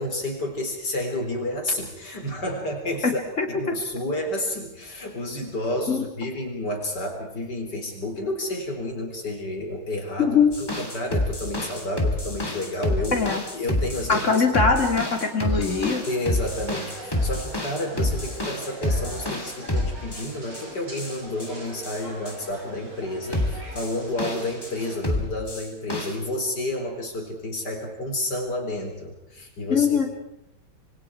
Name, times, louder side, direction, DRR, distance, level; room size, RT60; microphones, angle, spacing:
voice 1, 0.0-3.2 3.5-13.2 13.5-14.7 16.1-29.9, left 1 dB, 50° left, 3 dB, 4.4 m, -30 dB
voice 2, 3.0-3.5 5.9-6.0 10.2-10.5 13.1-13.4 14.1-16.1 29.7-30.1, left 5 dB, 35° left, 4 dB, 3.1 m, -21 dB
sound 1, 10.5-20.6 21.0-21.5 21.8-22.3 23.3-24.7 25.0-26.1, left 1 dB, 10° left, 2.8 m, -28 dB
sound 2, 15.6-25.0, right 1 dB, 90° right, 6.4 m, -42 dB
26.0 x 24.5 x 4.7 m, 0.82 s
omnidirectional pair, 2.3 m